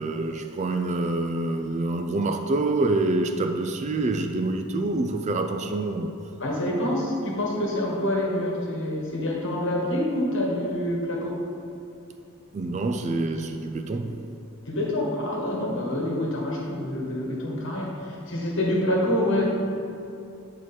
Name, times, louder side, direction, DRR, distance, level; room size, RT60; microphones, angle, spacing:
voice 1, 0.0-6.1 12.5-14.2, right 2 dB, 30° right, 6 dB, 0.3 m, -26 dB
voice 2, 6.4-11.4 14.7-19.5, left 1 dB, 60° left, -2 dB, 1.4 m, -26 dB
8.7 x 4.7 x 4.3 m, 2.6 s
head